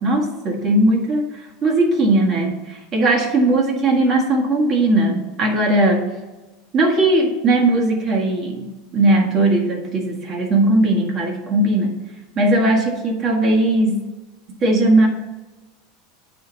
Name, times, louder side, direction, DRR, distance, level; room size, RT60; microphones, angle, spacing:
voice 1, 0.0-6.1 6.7-11.9 12.3-14.0 14.6-15.1, right 2 dB, 35° right, 0 dB, 1.7 m, -18 dB
8.6 x 5.2 x 4.0 m, 1.1 s
supercardioid pair, 130°, 0 cm